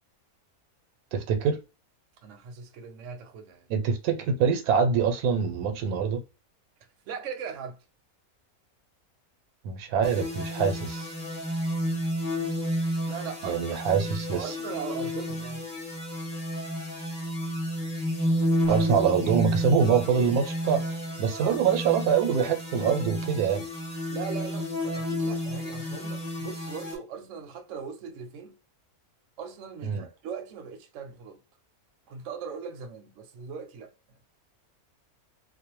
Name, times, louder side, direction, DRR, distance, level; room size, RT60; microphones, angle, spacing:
voice 1, 1.1-1.6 3.7-6.2 9.6-11.1 13.4-14.5 18.7-23.7 29.8-30.1, right 6 dB, 85° right, 1.1 m, -25 dB
voice 2, 2.2-3.7 7.1-7.8 13.1-13.8 14.3-15.7 21.4-21.6 24.1-28.6 29.4-31.4 32.1-33.9, right 6 dB, 65° right, 0.8 m, -39 dB
sound 1, 10.0-27.0, equal, 20° left, 0.7 m, -31 dB
2.4 x 2.1 x 2.9 m
omnidirectional pair, 1.6 m